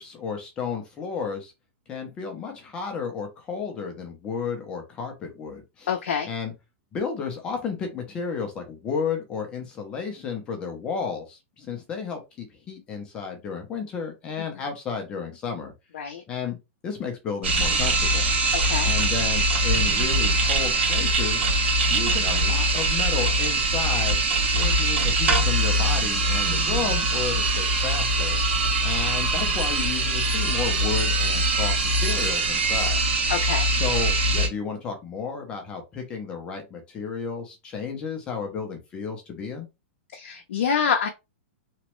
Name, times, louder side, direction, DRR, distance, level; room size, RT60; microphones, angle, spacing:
voice 1, 0.0-1.5 1.9-5.9 6.2-6.5 6.9-15.7 16.3-16.6 16.8-18.3 18.8-21.5 21.9-24.2 24.5-28.4 28.8-33.0 33.7-39.7, left 6 dB, 15° left, 0.5 m, -32 dB
voice 2, 5.9-6.3 15.9-16.2 18.5-18.9 33.3-33.7 40.1-41.1, left 7 dB, 65° left, 0.5 m, -26 dB
sound 1, 17.4-34.5, right 2 dB, 60° right, 1.2 m, -22 dB
3.0 x 2.1 x 3.0 m
supercardioid pair, 175°, 7 cm